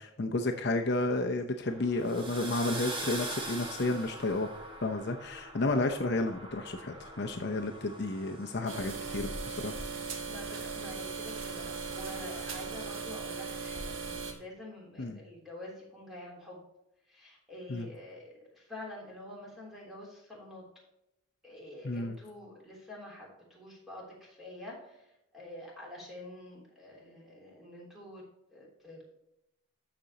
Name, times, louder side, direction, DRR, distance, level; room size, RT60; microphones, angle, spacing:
voice 1, 0.0-4.5 4.8-9.7 15.0-15.2 17.7-17.9 21.8-22.2, left 2 dB, 55° left, 4 dB, 0.7 m, -32 dB
sound 1, 1.6-13.0, right 1 dB, 25° right, 1.5 m, -44 dB
sound 2, 8.7-14.3, right 4 dB, 70° right, 1.4 m, -38 dB
voice 2, 10.2-16.6 17.1-20.6 21.4-28.2 28.5-29.1, left 1 dB, ahead, -4 dB, 3.2 m, -47 dB
13.5 x 5.2 x 2.9 m, 0.85 s
head